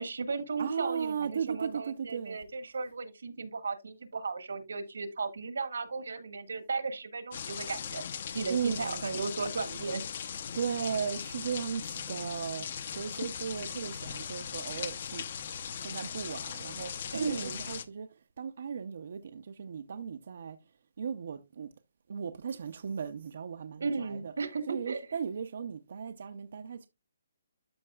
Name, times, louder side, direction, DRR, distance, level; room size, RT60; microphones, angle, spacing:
voice 1, 0.0-8.0 8.3-10.0 17.1-17.6 23.8-25.0, right 4 dB, 85° right, 1.6 m, -35 dB
voice 2, 0.6-2.4 8.5-9.0 10.5-15.2 15.8-18.1 18.4-20.6 21.0-21.7 22.1-24.3 24.7-26.9, right 7 dB, 55° right, 0.5 m, -36 dB
sound 1, 7.3-17.8, left 7 dB, 45° left, 0.7 m, -39 dB
13.0 x 4.6 x 2.3 m
hypercardioid pair, 170°, 0 cm